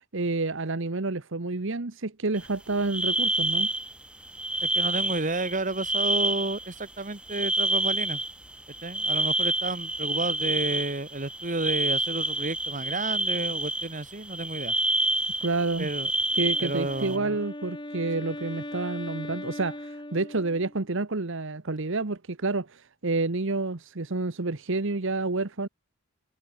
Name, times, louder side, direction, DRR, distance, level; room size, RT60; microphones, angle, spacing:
voice 1, 0.1-3.7 15.4-15.9 16.3-25.7, right 3 dB, 60° right, 1.1 m, -29 dB
sound 1, 2.4-2.5 2.8-3.9 4.2-6.9 7.2-17.2, right 1 dB, 5° right, 1.6 m, -28 dB
voice 2, 4.6-8.2 8.8-14.7 15.8-16.1 16.6-17.4, right 2 dB, 35° right, 1.8 m, -31 dB
Wind instrument woodwind instrument, 16.3-20.9, left 1 dB, 20° left, 3.1 m, -39 dB
head